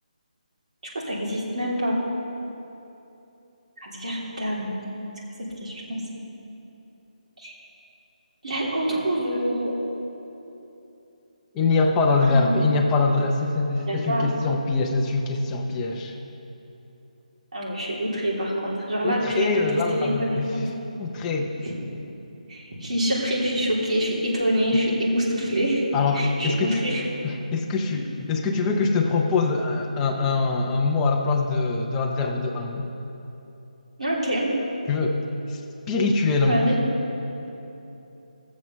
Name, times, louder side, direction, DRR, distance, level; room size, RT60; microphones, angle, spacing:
voice 1, 0.9-2.0 3.8-4.7 5.6-6.0 7.4-7.5 8.4-9.7 12.2-12.6 13.9-14.3 17.5-19.6 19.9-20.6 21.6-21.7 22.5-25.8 26.1-27.0 34.0-34.5 36.4-36.8, equal, 60° right, -5 dB, 3.2 m, -26 dB
voice 2, 11.5-16.2 19.0-20.7 21.0-21.5 25.9-26.8 27.2-32.9 34.9-35.2 35.5-35.6 35.9-36.7, left 3 dB, 5° left, 1 dB, 0.5 m, -23 dB
15.5 x 7.4 x 6.6 m, 3.0 s
hypercardioid pair, 175°, 4 cm